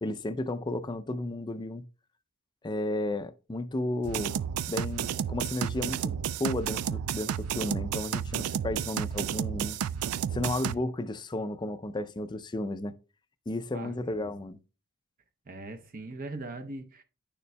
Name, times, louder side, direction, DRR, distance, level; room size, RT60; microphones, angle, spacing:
voice 1, 0.0-1.8 2.6-4.4 4.7-9.8 10.3-12.9 13.5-14.6, left 1 dB, 20° left, 0.4 m, -33 dB
sound 1, 4.0-10.8, right 8 dB, 80° right, 0.3 m, -32 dB
voice 2, 13.7-14.3 15.5-17.0, right 2 dB, 40° right, 0.6 m, -41 dB
10.0 x 6.7 x 2.2 m
head